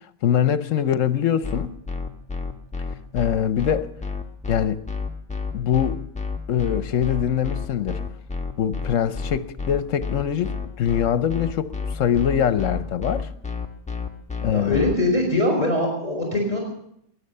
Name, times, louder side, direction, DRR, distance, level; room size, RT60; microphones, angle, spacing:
voice 1, 0.2-1.7 3.1-3.9 4.5-4.8 5.5-6.0 6.5-8.0 8.6-13.3 14.4-14.8, left 9 dB, 70° left, 1.1 m, -23 dB
sound 1, 1.4-14.9, left 4 dB, 5° left, 1.2 m, -29 dB
voice 2, 14.5-16.6, left 2 dB, 30° left, 4.8 m, -22 dB
21.5 x 9.8 x 6.6 m
omnidirectional pair, 1.4 m